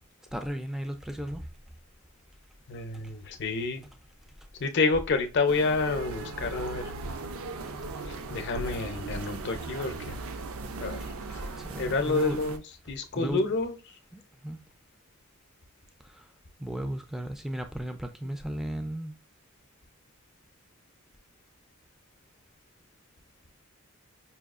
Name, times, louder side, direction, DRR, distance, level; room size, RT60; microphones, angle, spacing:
voice 1, 0.3-1.5 11.6-12.4 13.2-13.4 14.4-14.6 16.6-19.1, equal, ahead, 0.3 m, -34 dB
voice 2, 2.7-3.8 4.6-6.9 8.3-10.2 10.8-11.0 11.3-11.5 11.8-14.0, left 3 dB, 55° left, 0.6 m, -29 dB
sound 1, 5.5-12.6, right 3 dB, 70° right, 0.5 m, -38 dB
5.5 x 2.3 x 2.4 m
head